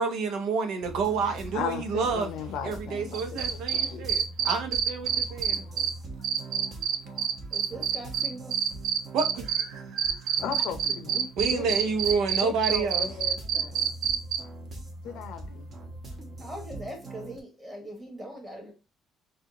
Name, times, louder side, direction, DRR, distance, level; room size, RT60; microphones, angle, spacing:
voice 1, 0.0-2.3 2.6-5.6 9.1-10.4 11.4-13.1, right 5 dB, 75° right, 0.8 m, -29 dB
sound 1, 0.8-17.4, right 2 dB, 40° right, 1.1 m, -42 dB
voice 2, 1.5-4.0 5.3-5.8 6.6-6.8 7.1-7.3 10.4-11.8 12.4-14.0 15.0-15.7, left 8 dB, 85° left, 0.6 m, -37 dB
sound 2, 3.1-5.9 6.2-9.6 10.0-14.4, right 9 dB, 60° right, 0.5 m, -26 dB
voice 3, 7.5-8.5 16.4-18.7, equal, 10° right, 1.6 m, -41 dB
4.8 x 2.5 x 2.9 m
cardioid pair, 150°, 0 cm